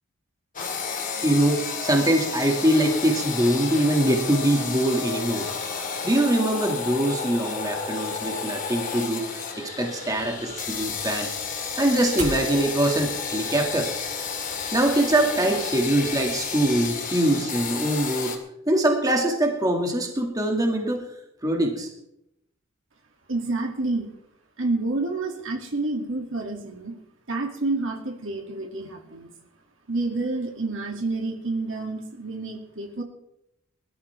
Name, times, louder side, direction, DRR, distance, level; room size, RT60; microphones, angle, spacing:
sound 1, 0.6-18.4, left 5 dB, 40° left, 2.3 m, -31 dB
voice 1, 1.2-5.5 6.0-9.3 9.6-11.3 11.8-13.9 14.7-18.4 18.7-21.0 21.4-21.9, right 1 dB, 20° right, 2 dB, 2.1 m, -23 dB
sound 2, 10.0-16.8, right 2 dB, 35° right, 4.1 m, -43 dB
voice 2, 23.3-24.1 24.6-27.0 27.3-29.3 29.9-33.0, right 2 dB, 70° right, 2 dB, 2.5 m, -29 dB
21.5 x 13.0 x 3.5 m, 0.81 s
head